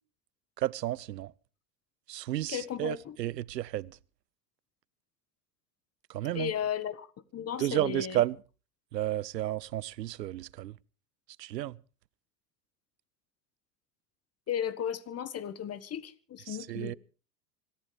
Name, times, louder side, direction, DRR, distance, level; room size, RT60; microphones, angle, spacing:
voice 1, 0.6-1.3 2.1-4.0 6.1-6.5 7.6-8.4 8.9-10.7 11.4-11.8 16.5-16.9, right 14 dB, 85° right, 0.7 m, -32 dB
voice 2, 2.5-3.2 6.3-7.1 7.3-8.2 14.5-17.0, left 9 dB, 30° left, 1.5 m, -35 dB
25.5 x 14.5 x 3.4 m
hypercardioid pair, 90°, 49 cm